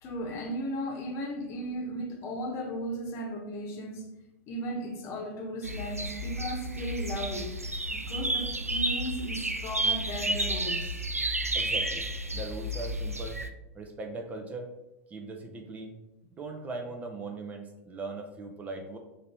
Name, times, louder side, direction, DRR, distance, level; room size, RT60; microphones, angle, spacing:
voice 1, 0.0-4.2 4.5-7.6 7.9-11.0, equal, 35° left, 2 dB, 1.0 m, -36 dB
sound 1, 5.6-13.5, right 1 dB, 90° right, 0.4 m, -31 dB
voice 2, 11.5-12.0 12.3-13.4 13.7-14.8 15.1-16.0 16.3-19.0, right 3 dB, 20° right, 3 dB, 0.5 m, -39 dB
3.9 x 2.8 x 4.4 m, 0.96 s
figure-of-eight pair, 90°, 8 cm